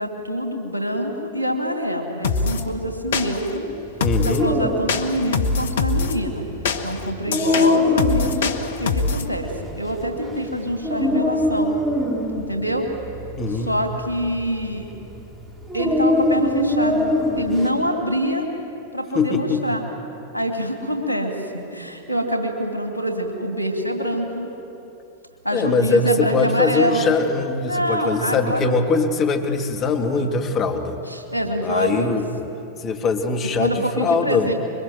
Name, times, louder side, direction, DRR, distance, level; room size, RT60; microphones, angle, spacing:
voice 1, 0.0-3.7 4.2-6.4 6.8-9.5 9.8-11.8 12.5-12.9 13.5-14.8 15.7-18.5 18.9-19.8 20.3-24.5 25.4-27.1 27.6-28.7 30.1-30.4 31.1-32.2 33.6-34.5, equal, 85° right, 4 dB, 2.7 m, -25 dB
sound 1, 2.2-2.6 3.1-3.6 4.0-4.5 4.9-6.2 6.7-9.3, left 4 dB, 60° left, 1.3 m, -23 dB
voice 2, 4.0-4.5 13.4-13.7 19.1-19.8 25.5-31.0 31.6-32.5 32.8-34.5, left 4 dB, 30° left, 4 dB, 2.2 m, -22 dB
Dog, 4.0-17.7, left 2 dB, 10° right, 4.1 m, -24 dB
25.5 x 23.0 x 7.7 m, 3.0 s
figure-of-eight pair, 90°, 0 cm